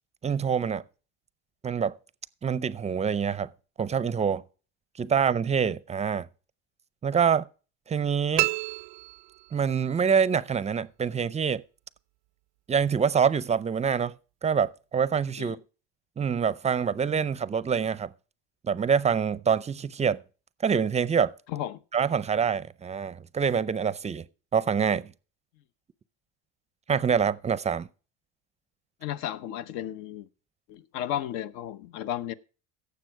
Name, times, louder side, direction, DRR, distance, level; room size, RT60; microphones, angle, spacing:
voice 1, 0.2-0.8 1.6-2.0 2.4-3.5 3.8-4.4 5.0-6.3 7.0-7.5 7.9-8.5 9.5-11.6 12.7-14.1 14.4-15.6 16.2-18.1 18.6-20.2 20.6-21.3 21.9-24.2 24.5-25.1 26.9-27.9, right 7 dB, 20° right, 0.5 m, -25 dB
sound 1, 8.4-9.9, right 26 dB, 70° right, 0.5 m, -30 dB
voice 2, 21.5-21.8 29.0-30.3 30.7-32.3, left 11 dB, 70° left, 0.9 m, -33 dB
16.0 x 7.2 x 4.7 m
supercardioid pair, 115°, 36 cm